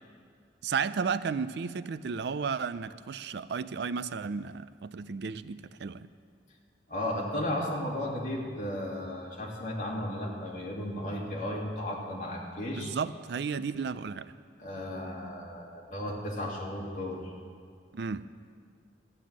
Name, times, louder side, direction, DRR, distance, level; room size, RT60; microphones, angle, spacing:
voice 1, 0.6-6.1 12.8-14.3 17.9-18.3, right 5 dB, 65° right, 14 dB, 0.4 m, -33 dB
voice 2, 6.9-12.9 14.6-17.3, left 1 dB, 45° left, -3 dB, 2.5 m, -34 dB
13.5 x 9.8 x 7.4 m, 2.2 s
head